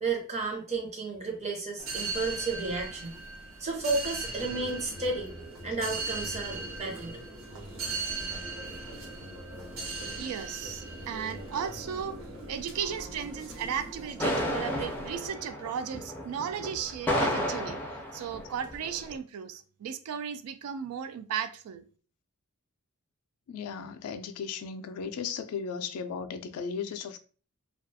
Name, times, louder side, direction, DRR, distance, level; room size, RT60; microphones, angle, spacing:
voice 1, 0.0-3.2 3.6-5.3 5.6-7.2, right 3 dB, 30° right, 0.6 m, -32 dB
sound 1, 1.8-15.3, right 3 dB, 65° right, 0.7 m, -39 dB
voice 2, 10.2-12.2 12.5-17.8 18.1-21.9, right 8 dB, 85° right, 0.3 m, -35 dB
sound 2, 14.2-19.2, equal, 10° left, 0.3 m, -32 dB
voice 3, 23.5-27.2, left 6 dB, 90° left, 0.3 m, -36 dB
2.3 x 2.2 x 2.6 m
head